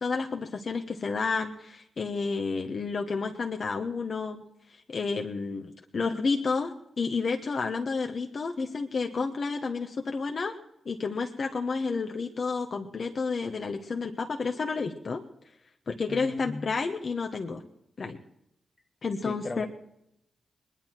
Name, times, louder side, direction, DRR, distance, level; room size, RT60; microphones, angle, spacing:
voice 1, 0.0-4.4 4.9-10.6 10.8-15.2 15.9-17.6 18.0-18.2 19.0-19.7, left 4 dB, 60° left, 3 dB, 1.2 m, -30 dB
voice 2, 16.1-16.7 19.2-19.7, left 2 dB, 30° left, 6 dB, 1.7 m, -37 dB
20.0 x 11.0 x 4.6 m, 0.80 s
supercardioid pair, 50°, 0 cm